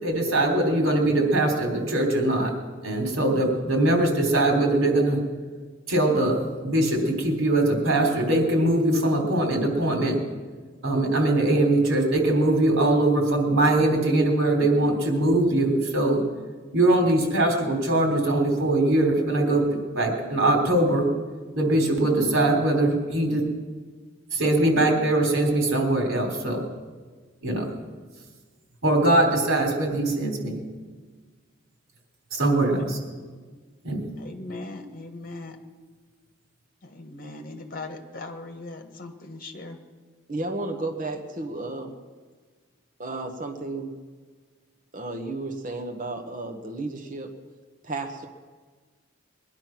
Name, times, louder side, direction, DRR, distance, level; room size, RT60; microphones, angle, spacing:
voice 1, 0.0-2.5 2.8-5.2 5.9-10.2 10.8-16.2 16.7-21.1 21.5-23.4 24.3-26.6 27.4-27.7 28.8-30.6 32.3-33.0 33.8-34.1, right 1 dB, 90° right, 3 dB, 3.6 m, -22 dB
voice 2, 32.8-33.2 33.5-33.6 34.1-35.6 36.8-39.8, left 2 dB, 45° left, 5 dB, 1.5 m, -39 dB
voice 3, 40.3-42.0 43.0-44.0 44.9-47.4 47.8-48.3, right 2 dB, 40° right, 2 dB, 1.3 m, -33 dB
21.5 x 11.0 x 6.0 m, 1.5 s
head